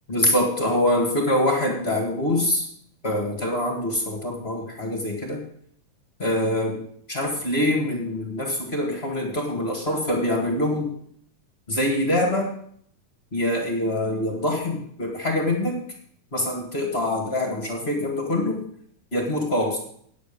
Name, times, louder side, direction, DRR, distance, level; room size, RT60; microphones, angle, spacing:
voice 1, 0.1-2.7 3.0-5.4 6.2-6.8 7.1-10.9 11.7-12.5 13.3-15.8 16.3-18.6 19.1-19.8, left 1 dB, 30° left, 1 dB, 1.3 m, -24 dB
9.3 x 8.0 x 6.8 m, 0.65 s
omnidirectional pair, 3.6 m